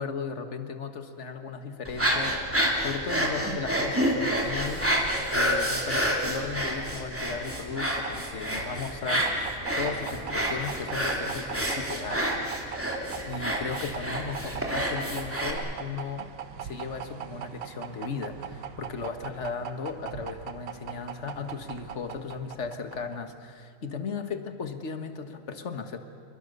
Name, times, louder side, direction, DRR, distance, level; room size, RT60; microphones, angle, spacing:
voice 1, 0.0-2.4 2.8-4.9 5.3-9.3 9.8-12.9 13.3-16.3 16.6-26.0, left 5 dB, 40° left, 7 dB, 1.7 m, -36 dB
sound 1, 1.8-15.5, equal, 5° right, 2.8 m, -29 dB
sound 2, 7.7-23.3, right 9 dB, 75° right, 1.7 m, -41 dB
28.0 x 23.5 x 6.8 m, 2.3 s
omnidirectional pair, 2.0 m